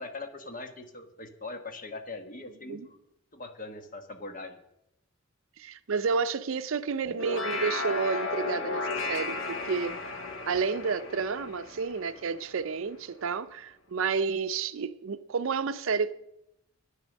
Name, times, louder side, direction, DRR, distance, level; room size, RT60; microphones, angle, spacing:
voice 1, 0.0-3.0 3.3-4.6, left 3 dB, 40° left, 1.1 m, -41 dB
voice 2, 5.6-9.9 10.5-16.1, right 5 dB, 70° right, 0.5 m, -30 dB
sound 1, 7.0-12.6, left 3 dB, 65° left, 1.3 m, -34 dB
9.8 x 9.3 x 6.3 m
head